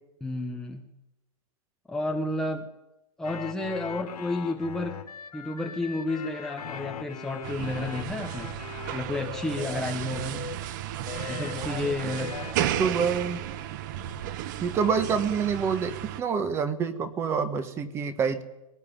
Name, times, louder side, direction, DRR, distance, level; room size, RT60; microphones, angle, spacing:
voice 1, 0.2-0.8 1.9-2.7 3.2-5.0 5.3-8.5 8.9-10.4 11.3-12.4, left 2 dB, 5° left, 1 dB, 0.9 m, -31 dB
sound 1, 3.2-10.6 11.1-13.1, left 8 dB, 90° left, 3.6 m, -40 dB
sound 2, 7.4-16.2, right 12 dB, 30° right, 0.9 m, -34 dB
voice 2, 12.8-13.4 14.6-18.4, right 6 dB, 15° right, 12 dB, 1.3 m, -27 dB
21.0 x 17.5 x 10.0 m, 0.94 s
hypercardioid pair, 170°, 19 cm